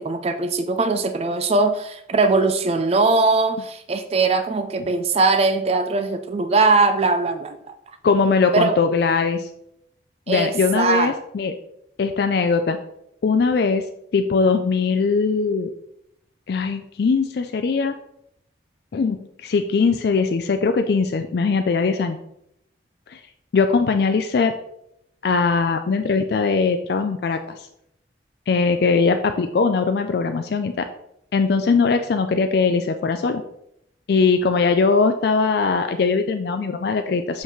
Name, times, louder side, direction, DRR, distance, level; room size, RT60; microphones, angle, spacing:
voice 1, 0.0-7.7 8.5-8.8 10.3-11.2, right 3 dB, 35° right, 8 dB, 0.3 m, -20 dB
voice 2, 8.0-9.5 10.3-11.5 12.0-12.8 13.2-13.8 14.1-15.7 16.5-18.0 18.9-22.2 23.1-23.2 23.5-24.5 25.2-27.7 28.5-30.9 31.3-33.4 34.1-37.4, left 4 dB, 55° left, 7 dB, 0.3 m, -20 dB
5.8 x 5.6 x 3.1 m, 0.78 s
head